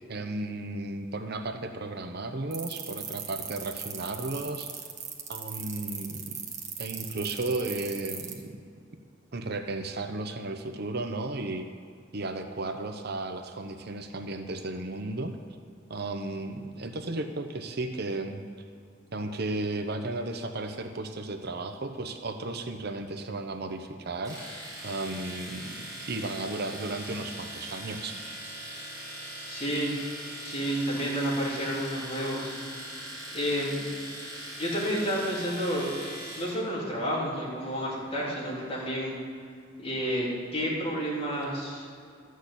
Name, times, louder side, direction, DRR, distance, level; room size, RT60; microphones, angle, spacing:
voice 1, 0.1-4.8 5.3-6.4 6.8-8.6 9.3-11.7 12.1-15.4 15.9-18.4 19.1-24.4 24.8-28.2, right 2 dB, 55° right, 6 dB, 0.9 m, -34 dB
sound 1, 2.5-8.3, right 8 dB, 40° right, 1.4 m, -37 dB
Domestic sounds home sounds, 24.2-36.6, right 1 dB, 20° right, 3.6 m, -41 dB
voice 2, 29.5-29.9 30.4-33.0 33.3-33.8 34.6-35.9 36.4-39.1 39.8-41.9, equal, 30° left, -6 dB, 3.7 m, -30 dB
13.0 x 6.5 x 8.3 m, 2.2 s
head